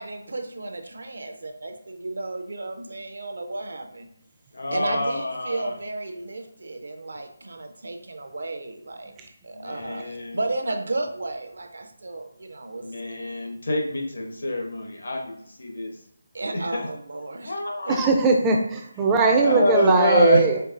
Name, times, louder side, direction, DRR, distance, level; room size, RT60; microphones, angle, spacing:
voice 1, 0.0-4.1 4.7-9.1 9.4-12.9 16.3-17.6 17.9-18.0, right 2 dB, 70° right, 5 dB, 0.5 m, -33 dB
voice 2, 4.5-5.7 9.5-10.4 12.8-15.9 16.5-16.9 17.4-18.0 19.4-20.4, left 2 dB, 65° left, 1 dB, 0.9 m, -26 dB
voice 3, 17.9-20.6, right 4 dB, 15° right, 1 dB, 0.4 m, -19 dB
4.6 x 2.4 x 2.4 m, 0.69 s
figure-of-eight pair, 165°, 0 cm